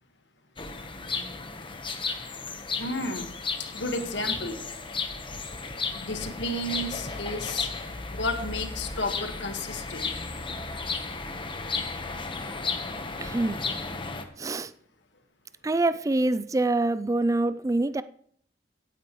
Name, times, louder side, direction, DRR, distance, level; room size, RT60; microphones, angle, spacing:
sound 1, 0.6-14.2, left 4 dB, 30° left, 1.0 m, -34 dB
voice 1, 2.8-3.3 3.7-4.7 5.9-7.7 8.1-10.1, left 1 dB, 85° left, 1.6 m, -32 dB
voice 2, 13.2-13.6 14.4-14.7 15.6-18.0, right 2 dB, 20° right, 0.4 m, -25 dB
17.0 x 9.1 x 3.1 m
head